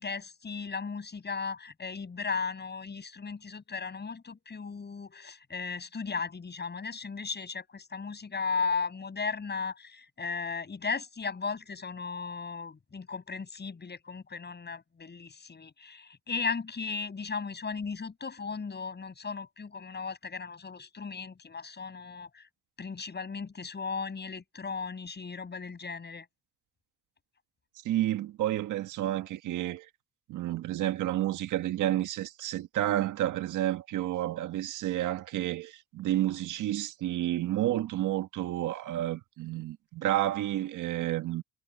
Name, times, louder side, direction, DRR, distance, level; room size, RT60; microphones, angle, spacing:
voice 1, 0.0-22.5 22.8-26.3, left 5 dB, 35° left, 7.0 m, -36 dB
voice 2, 27.8-29.9 30.3-41.4, right 13 dB, 85° right, 1.6 m, -30 dB
cardioid pair, 90°, 30 cm